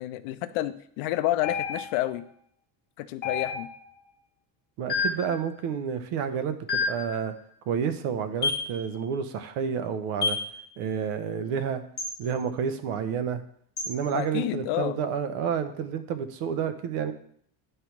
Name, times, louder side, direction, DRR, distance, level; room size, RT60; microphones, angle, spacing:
voice 1, 0.0-2.2 3.0-3.7 14.1-15.0, left 14 dB, 80° left, 12 dB, 0.7 m, -29 dB
sound 1, 1.4-2.1 3.2-3.9 4.9-5.3 6.7-7.1 8.4-8.7 10.2-10.5 12.0-12.2 13.8-14.0, left 4 dB, 20° left, 1.3 m, -29 dB
voice 2, 4.8-7.3 7.7-10.4 10.8-11.8 12.2-13.4 13.9-17.1, right 7 dB, 85° right, 9 dB, 1.0 m, -30 dB
9.6 x 3.4 x 5.9 m, 0.64 s
cardioid pair, 175°, 48 cm